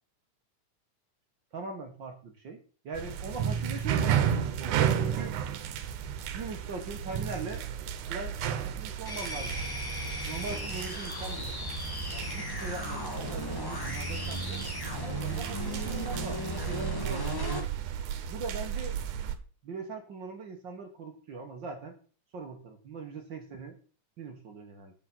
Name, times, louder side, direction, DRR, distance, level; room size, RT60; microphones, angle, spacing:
voice 1, 1.5-2.6 2.8-5.4 6.3-7.6 8.1-8.4 8.6-9.5 10.2-11.5 12.1-14.6 15.0-17.6 18.3-19.0 19.6-21.9 22.3-23.8 24.2-24.9, right 4 dB, 55° right, 4 dB, 1.4 m, -41 dB
sound 1, 2.9-19.4, right 9 dB, 85° right, 2.3 m, -33 dB
sound 2, 9.0-17.7, equal, 35° left, 0.3 m, -36 dB
8.4 x 6.9 x 6.0 m, 0.40 s
omnidirectional pair, 3.5 m